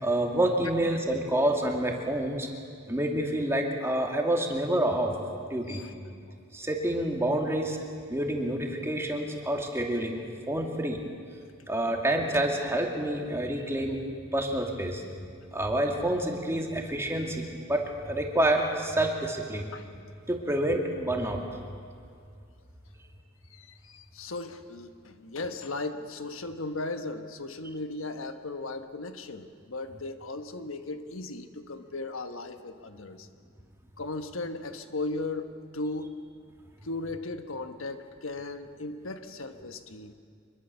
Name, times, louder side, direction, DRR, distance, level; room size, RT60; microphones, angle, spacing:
voice 1, 0.0-2.5 2.9-5.1 5.5-5.8 6.5-7.8 8.1-11.0 11.7-14.0 14.3-15.0 15.5-19.7 20.3-21.4, right 1 dB, 15° right, 1 dB, 2.4 m, -28 dB
voice 2, 23.5-33.3 34.0-36.1 36.8-40.1, left 2 dB, 80° left, 8 dB, 1.3 m, -37 dB
25.0 x 22.0 x 7.0 m, 2.3 s
head